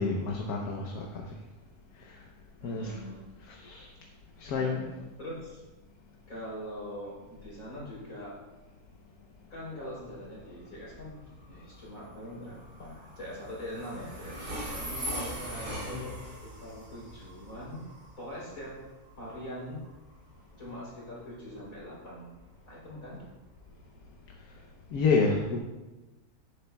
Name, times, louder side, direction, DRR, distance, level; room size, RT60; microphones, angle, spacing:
voice 1, 0.0-1.3 2.0-2.3 2.6-3.0 3.4-3.9 4.4-5.1 15.9-16.0 24.4-24.5 24.9-25.6, left 4 dB, 80° left, 1 dB, 1.4 m, -30 dB
voice 2, 2.6-3.3 4.5-4.8 5.2-5.6 6.3-8.4 9.5-18.9 19.2-19.9 20.6-22.3 22.7-23.3, equal, 65° left, -6 dB, 4.0 m, -42 dB
Train, 10.1-24.8, equal, 55° right, 3.3 m, -42 dB
11.0 x 10.0 x 2.3 m, 1.1 s
omnidirectional pair, 1.6 m